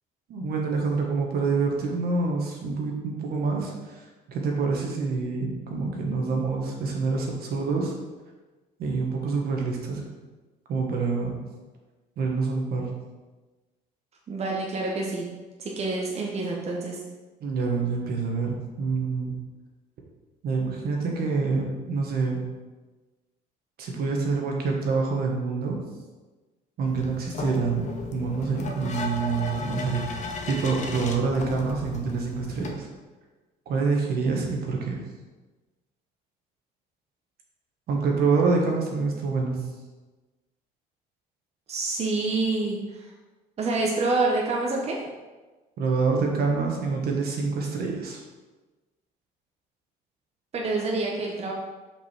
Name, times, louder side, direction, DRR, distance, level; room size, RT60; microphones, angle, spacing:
voice 1, 0.3-7.9 8.8-10.0 10.7-11.4 12.2-12.9 17.4-19.4 20.4-22.4 23.8-25.8 26.8-32.9 33.6-35.0 37.9-39.6 45.8-48.2, right 4 dB, 65° right, 0 dB, 1.6 m, -26 dB
voice 2, 14.3-15.2 15.6-17.0 41.7-43.1 43.6-45.0 50.5-51.5, right 3 dB, 40° right, -2 dB, 1.1 m, -27 dB
sound 1, 26.9-32.7, left 3 dB, 45° left, 1.0 m, -35 dB
6.0 x 5.3 x 4.7 m, 1.2 s
cardioid pair, 110°, 17 cm